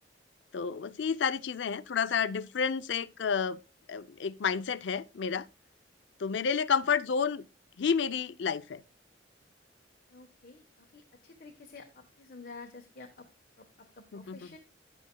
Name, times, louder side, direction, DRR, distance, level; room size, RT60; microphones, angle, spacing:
voice 1, 0.5-3.6 3.9-5.5 6.2-7.4 7.8-8.8 14.1-14.4, left 6 dB, 70° left, 0.5 m, -30 dB
voice 2, 10.1-13.3 13.6-14.6, left 3 dB, 50° left, 1.1 m, -50 dB
11.5 x 9.1 x 2.2 m
head